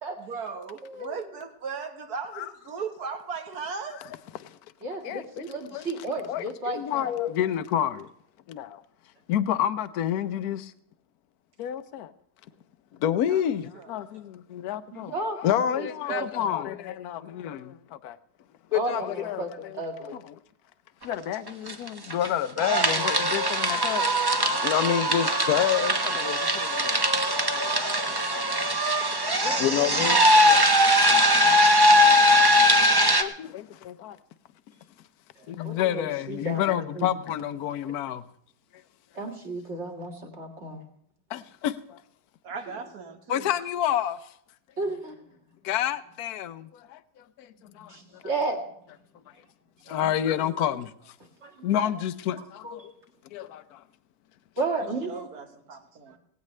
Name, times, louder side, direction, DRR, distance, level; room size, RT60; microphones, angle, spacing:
voice 1, 0.2-4.1 13.2-13.9 42.4-43.5 49.8-50.7 54.7-56.2, right 5 dB, 60° right, 1.9 m, -38 dB
voice 2, 0.8-1.1 4.8-7.1 14.9-16.5 18.7-19.5 19.8-20.2 29.4-29.9 35.6-37.1 39.2-40.8 44.8-45.2 47.9-48.6 51.4-51.5 51.8-51.9 52.6-52.9 54.6-55.3, right 2 dB, 40° right, 2.3 m, -33 dB
voice 3, 5.0-5.9 6.3-8.1 8.5-8.8 9.3-10.7 11.6-12.1 13.0-18.2 18.7-20.4 21.0-24.0 24.6-27.0 27.4-28.8 29.6-31.5 31.8-32.4 33.2-34.2 35.5-38.2 41.3-42.0 43.3-44.3 45.6-48.2 49.9-51.1 51.6-52.9 53.3-53.8, left 10 dB, 65° left, 1.1 m, -29 dB
sound 1, 21.1-21.2 21.5-22.3 22.6-33.2, equal, 20° right, 0.6 m, -21 dB
18.0 x 16.5 x 3.3 m
omnidirectional pair, 1.9 m